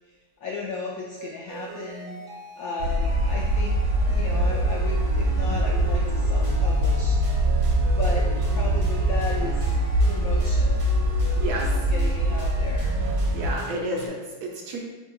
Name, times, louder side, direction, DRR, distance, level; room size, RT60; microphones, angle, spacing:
voice 1, 0.0-2.2 2.6-3.8 4.0-7.5 8.0-9.7 10.0-10.9 11.5-12.9, left 4 dB, 75° left, -3 dB, 0.8 m, -35 dB
sound 1, 1.1-14.1, right 1 dB, 45° right, 0.4 m, -39 dB
sound 2, 2.8-13.5, right 1 dB, 90° right, 1.3 m, -23 dB
voice 2, 11.3-11.7 13.3-14.9, right 2 dB, 70° right, -1 dB, 1.1 m, -31 dB
7.8 x 2.8 x 2.3 m, 1.3 s
omnidirectional pair, 2.0 m